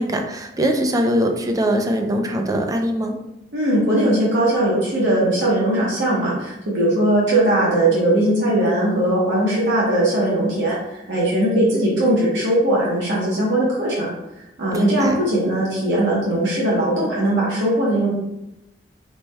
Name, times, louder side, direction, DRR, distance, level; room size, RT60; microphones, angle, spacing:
voice 1, 0.0-3.2 14.7-15.2, equal, 20° right, 3 dB, 0.4 m, -21 dB
voice 2, 3.5-14.1 14.6-18.1, right 1 dB, 75° right, -6 dB, 0.9 m, -19 dB
3.3 x 2.2 x 4.1 m, 0.89 s
head